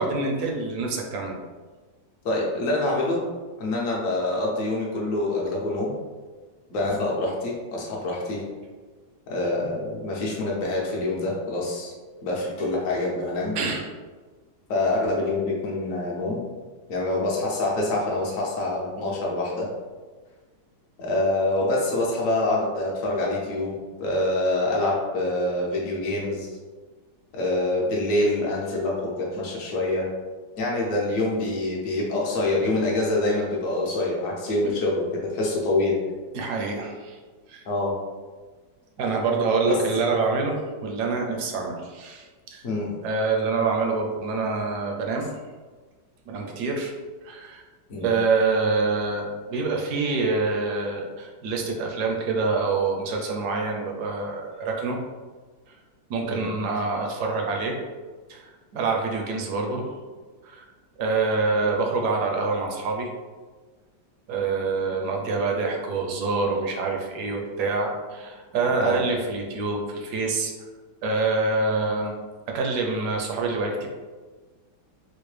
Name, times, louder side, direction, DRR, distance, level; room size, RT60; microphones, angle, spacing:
voice 1, 0.0-1.3 13.5-13.8 34.6-34.7 36.3-37.2 37.5-37.7 39.0-42.6 43.0-45.3 46.3-46.9 47.2-47.7 48.0-55.0 56.1-57.8 58.3-59.8 60.4-60.7 61.0-63.1 64.3-70.5 71.0-72.1 72.5-73.9, right 3 dB, 70° right, 1 dB, 1.1 m, -26 dB
voice 2, 2.2-3.2 3.6-5.9 6.7-8.4 9.3-11.9 12.2-13.5 14.7-16.4 16.9-19.7 21.0-26.5 27.3-30.1 30.6-36.0 37.7-38.0 39.6-39.8 42.6-42.9 47.9-48.2 56.3-56.5 68.8-69.0, left 2 dB, 60° left, -3 dB, 1.0 m, -26 dB
4.5 x 2.1 x 3.2 m, 1.4 s
omnidirectional pair, 1.9 m